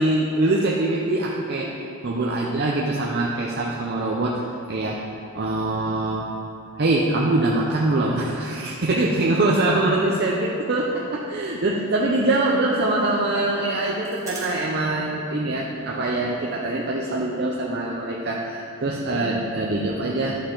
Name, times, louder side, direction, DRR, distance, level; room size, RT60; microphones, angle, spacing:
voice 1, 0.0-1.7 2.0-4.4 4.7-5.0 5.3-6.3 6.8-20.4, right 2 dB, 50° right, -3 dB, 0.7 m, -23 dB
sound 1, 11.7-15.1 15.3-15.4 15.7-15.9 16.2-17.3, right 3 dB, 15° right, 1.6 m, -43 dB
11.5 x 6.5 x 3.9 m, 2.7 s
head